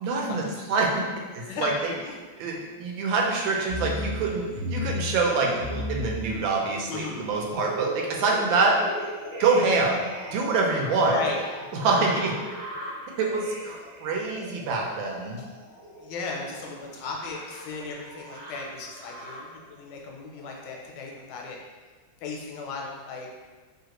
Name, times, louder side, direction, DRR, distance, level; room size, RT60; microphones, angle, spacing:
voice 1, 0.0-0.4 0.7-0.9 1.3-1.9 2.4-2.5 2.8-4.5 4.7-8.7 9.4-10.0 10.3-11.1 11.8-12.3 13.2-15.4, right 3 dB, 90° right, 0 dB, 1.4 m, -25 dB
voice 2, 1.5-2.0 6.9-7.3 11.0-11.4 12.0-12.1 16.0-21.6 22.2-23.3, left 4 dB, 80° left, 0 dB, 1.3 m, -35 dB
sound 1, 3.7-19.6 20.2-20.9 21.4-21.5, equal, 75° right, 1.3 m, -37 dB
3.2 x 2.4 x 2.9 m, 1.4 s
omnidirectional pair, 2.0 m